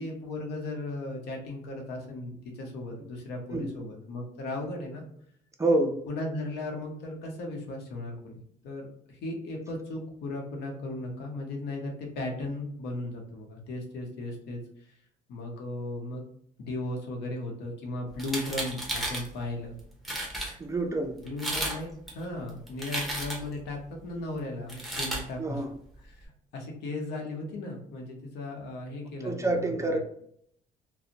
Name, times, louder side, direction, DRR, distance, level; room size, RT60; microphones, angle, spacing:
voice 1, 0.0-5.0 6.1-14.9 15.3-16.2 16.6-19.7 21.2-25.6 26.0-30.0, left 2 dB, 80° left, 1 dB, 0.8 m, -36 dB
voice 2, 5.6-6.0 20.6-21.2 25.4-25.7 29.2-30.0, right 2 dB, 15° right, 4 dB, 0.3 m, -27 dB
sound 1, 18.1-19.3 19.8-19.9 20.0-20.5 21.3-21.8 22.1-23.6 24.7-25.2, right 1 dB, ahead, 0.8 m, -33 dB
2.5 x 2.0 x 2.7 m, 0.67 s
cardioid pair, 110°, 17 cm